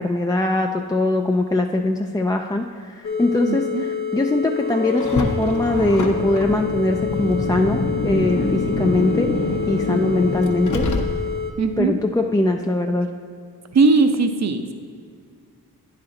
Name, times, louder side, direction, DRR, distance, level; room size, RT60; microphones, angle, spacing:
voice 1, 0.0-2.7 3.0-9.3 9.7-10.8 11.8-13.1, left 2 dB, 10° left, 2 dB, 0.3 m, -21 dB
sound 1, 3.0-11.5, left 6 dB, 80° left, 1.0 m, -28 dB
voice 2, 3.5-3.8 11.6-12.0 13.7-14.7, right 3 dB, 45° right, 7 dB, 0.7 m, -19 dB
sound 2, 4.4-8.0, left 5 dB, 85° right, 0.9 m, -34 dB
Car, 5.0-11.5, left 2 dB, 50° left, 0.8 m, -25 dB
9.6 x 4.3 x 3.8 m, 2.2 s
cardioid pair, 40°, 38 cm